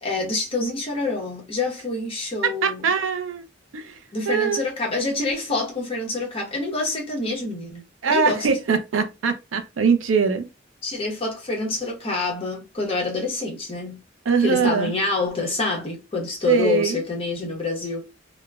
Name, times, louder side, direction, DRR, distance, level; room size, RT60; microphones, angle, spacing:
voice 1, 0.0-2.8 4.1-8.5 10.8-14.0 14.4-18.1, left 3 dB, 30° left, 1.0 m, -27 dB
voice 2, 2.4-3.4 3.7-4.0 4.3-4.6 8.0-10.5 14.3-14.9 16.4-17.0, right 5 dB, 90° right, 0.5 m, -22 dB
2.9 x 2.2 x 2.3 m
head